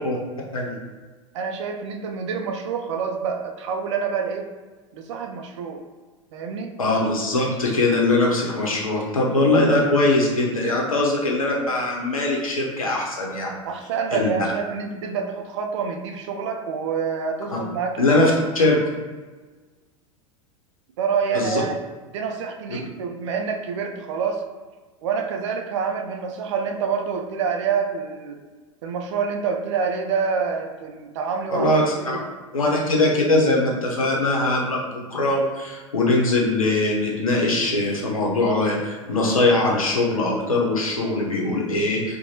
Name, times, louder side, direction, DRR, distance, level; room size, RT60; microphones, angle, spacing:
voice 1, 1.3-4.5 4.9-5.8 6.3-6.8 13.6-18.2 21.0-21.8 22.1-24.4 25.0-28.4 28.8-31.7 32.0-32.3 32.8-32.9, right 6 dB, 60° right, 4 dB, 0.4 m, -27 dB
voice 2, 6.8-13.5 14.1-14.3 17.5-17.6 18.0-18.8 21.3-21.6 31.5-31.8 32.5-42.2, left 2 dB, 85° left, -2 dB, 0.7 m, -21 dB
2.6 x 2.2 x 3.0 m, 1.3 s
figure-of-eight pair, 85°, 17 cm